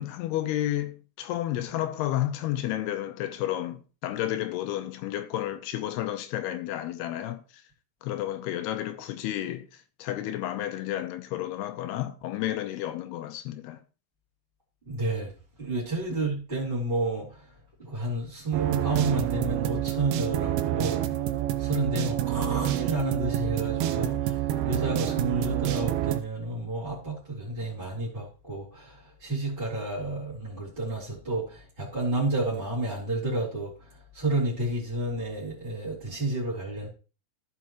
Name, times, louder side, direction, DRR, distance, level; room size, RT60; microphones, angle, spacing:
voice 1, 0.0-7.4 8.0-13.8, left 13 dB, 90° left, 2.9 m, -31 dB
voice 2, 14.8-15.3 15.6-17.5 17.8-21.1 21.6-36.9, right 2 dB, 15° right, 2.8 m, -31 dB
sound 1, 18.5-26.2, right 12 dB, 80° right, 2.6 m, -28 dB
14.0 x 6.0 x 3.0 m
omnidirectional pair, 4.6 m